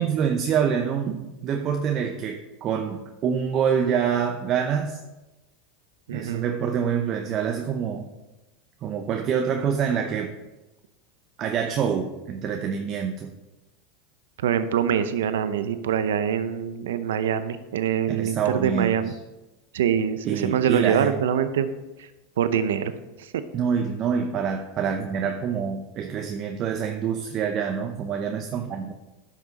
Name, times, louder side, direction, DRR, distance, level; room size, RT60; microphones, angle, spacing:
voice 1, 0.0-5.0 6.1-8.1 8.8-10.3 11.4-13.3 18.1-19.0 20.2-21.1 23.5-28.9, right 7 dB, 40° right, 4 dB, 0.7 m, -26 dB
voice 2, 6.1-6.4 14.4-19.1 19.7-21.7 22.0-22.1 22.4-22.9, right 8 dB, 85° right, 11 dB, 0.6 m, -24 dB
10.5 x 6.1 x 4.1 m, 1.0 s
supercardioid pair, 120°, 0 cm